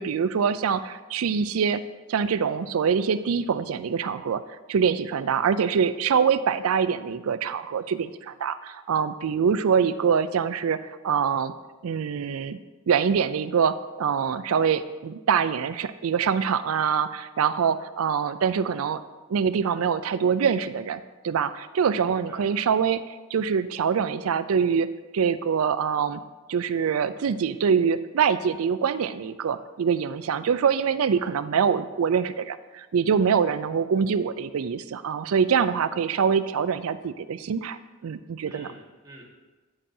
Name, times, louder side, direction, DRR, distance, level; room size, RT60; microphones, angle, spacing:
voice 1, 0.0-1.8 2.1-4.4 4.7-10.8 11.0-11.5 11.8-12.6 12.9-19.0 19.3-24.9 25.1-26.2 26.5-37.8 38.0-38.7, right 6 dB, 75° right, 13 dB, 0.4 m, -24 dB
voice 2, 21.9-22.5 38.5-39.2, right 1 dB, 15° right, -3 dB, 1.4 m, -47 dB
8.8 x 8.5 x 2.7 m, 1.2 s
head